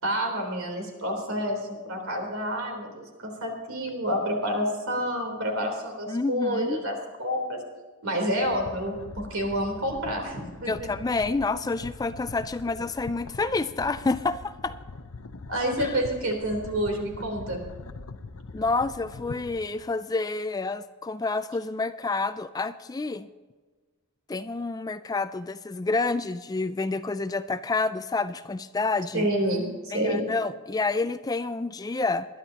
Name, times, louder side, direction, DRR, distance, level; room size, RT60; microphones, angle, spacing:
voice 1, 0.0-7.6 8.0-10.9 15.5-17.6 29.1-30.3, equal, 70° right, 2 dB, 3.5 m, -29 dB
voice 2, 6.1-6.8 10.7-14.8 15.8-16.0 18.5-23.3 24.3-29.3 29.9-32.3, left 3 dB, 15° left, 12 dB, 0.3 m, -28 dB
sound 1, 8.3-19.9, left 3 dB, 80° left, 0.8 m, -42 dB
21.5 x 11.5 x 2.9 m, 1.4 s
head